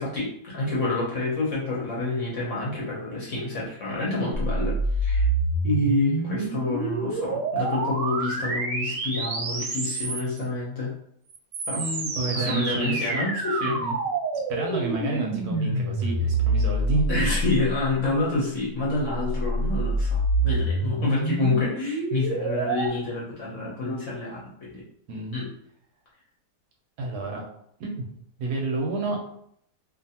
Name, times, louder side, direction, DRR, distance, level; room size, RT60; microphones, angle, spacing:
voice 1, 0.0-5.3 5.6-10.9 11.7-11.8 12.3-13.8 17.0-24.8 25.3-25.5, left 2 dB, 60° left, -5 dB, 0.9 m, -28 dB
sound 1, 4.3-10.4 11.3-17.9 19.0-22.9, right 2 dB, 90° right, 1.3 m, -27 dB
voice 2, 11.7-13.3 13.8-14.0 14.5-17.3 25.1-25.4 27.0-27.4 27.8-28.1 28.4-29.2, right 2 dB, 70° right, 0 dB, 1.0 m, -29 dB
2.6 x 2.5 x 2.7 m, 0.70 s
omnidirectional pair, 1.9 m